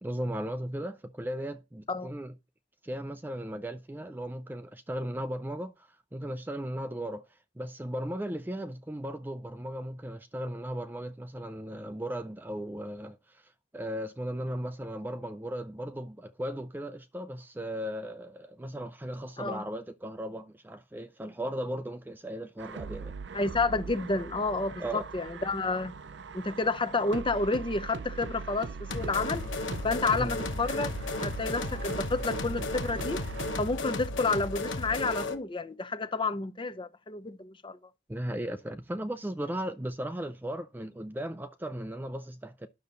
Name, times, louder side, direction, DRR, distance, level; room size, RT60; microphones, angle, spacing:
voice 1, 0.0-2.3 2.8-7.3 7.6-23.1 24.8-25.0 30.2-30.3 38.1-42.7, right 1 dB, 10° right, 0.4 m, -36 dB
sound 1, 22.6-33.6, right 4 dB, 65° right, 0.5 m, -41 dB
voice 2, 23.3-25.9 26.3-29.4 29.8-33.2 33.6-37.8, left 3 dB, 25° left, 0.7 m, -30 dB
sound 2, 28.9-35.4, left 2 dB, 85° left, 1.1 m, -34 dB
10.0 x 6.8 x 4.0 m
head